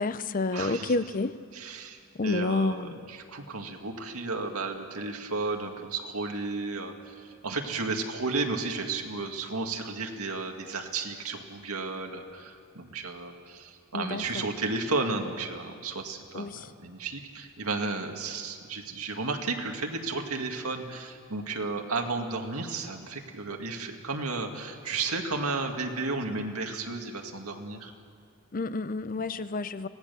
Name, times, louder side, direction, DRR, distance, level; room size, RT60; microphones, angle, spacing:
voice 1, 0.0-1.3 2.2-3.0 13.9-14.4 16.3-16.7 28.5-29.9, left 3 dB, 40° left, 13 dB, 0.5 m, -29 dB
voice 2, 0.5-0.9 1.5-27.9 29.2-29.3, right 3 dB, 80° right, 3 dB, 2.1 m, -33 dB
24.5 x 18.0 x 7.0 m, 2.2 s
head